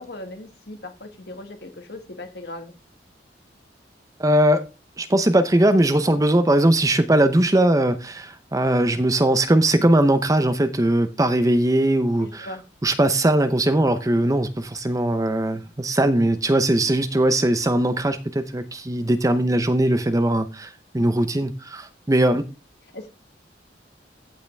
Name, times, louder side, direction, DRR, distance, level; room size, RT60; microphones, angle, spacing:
voice 1, 0.0-2.7 12.2-12.6 22.9-23.1, left 2 dB, 60° left, 1.9 m, -38 dB
voice 2, 4.2-4.6 5.0-12.5 12.8-22.4, right 1 dB, 20° right, 0.7 m, -20 dB
15.0 x 5.7 x 3.4 m
head